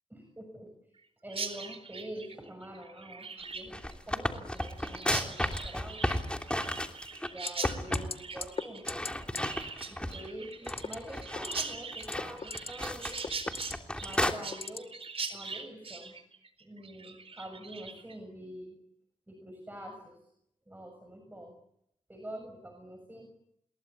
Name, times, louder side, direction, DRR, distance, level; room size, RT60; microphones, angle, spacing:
voice 1, 0.1-0.7 1.2-6.0 7.3-9.0 9.9-13.2 14.0-14.9 15.3-16.1 16.6-18.8 19.3-20.2 20.7-21.5 22.1-23.3, right 1 dB, 15° right, 4 dB, 6.8 m, -45 dB
Chirp tweet, 1.3-18.2, right 4 dB, 50° right, 4.4 m, -41 dB
sound 1, 3.5-7.3 7.6-8.1 8.4-8.5 8.8-10.3 10.7-14.3, left 1 dB, 10° left, 3.0 m, -33 dB
sound 2, 7.5-7.7 7.9-8.1 8.4-8.6 8.9-9.1 9.3-9.4 10.6-10.9 11.3-11.6 12.0-12.7 13.0-13.7 14.1-14.8 15.2-15.4, left 4 dB, 50° left, 2.0 m, -36 dB
28.0 x 22.0 x 8.5 m, 0.77 s
cardioid pair, 70°, 13 cm